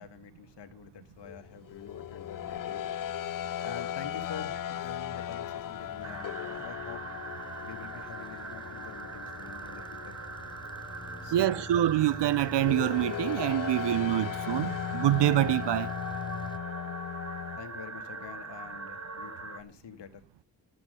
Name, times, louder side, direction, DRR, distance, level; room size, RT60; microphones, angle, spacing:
voice 1, 0.0-2.9 3.6-7.0 7.6-10.2 11.2-11.7 17.6-20.2, left 8 dB, 75° left, 1.9 m, -46 dB
sound 1, 1.2-17.6, left 10 dB, 50° left, 0.6 m, -38 dB
sound 2, 4.6-16.6, left 2 dB, 10° left, 0.9 m, -46 dB
sound 3, 6.0-19.6, right 3 dB, 40° right, 2.1 m, -42 dB
voice 2, 11.3-15.9, right 13 dB, 75° right, 0.7 m, -26 dB
12.5 x 8.0 x 9.2 m
cardioid pair, 55°, 42 cm